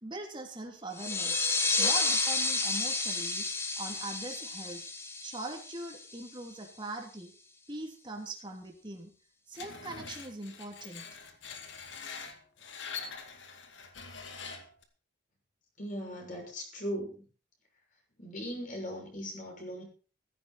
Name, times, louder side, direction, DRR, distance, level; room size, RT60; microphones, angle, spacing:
voice 1, 0.0-1.4 1.8-3.5 3.8-4.8 5.2-7.3 7.7-9.1 9.5-11.0, right 2 dB, 25° right, 3 dB, 2.9 m, -41 dB
sound 1, 0.9-6.3, left 3 dB, 15° left, 1.5 m, -31 dB
Screech, 9.6-14.8, left 5 dB, 65° left, 2.3 m, -44 dB
voice 2, 15.8-17.2 18.2-19.8, equal, 40° left, 1 dB, 6.5 m, -38 dB
15.5 x 15.0 x 4.3 m, 0.38 s
head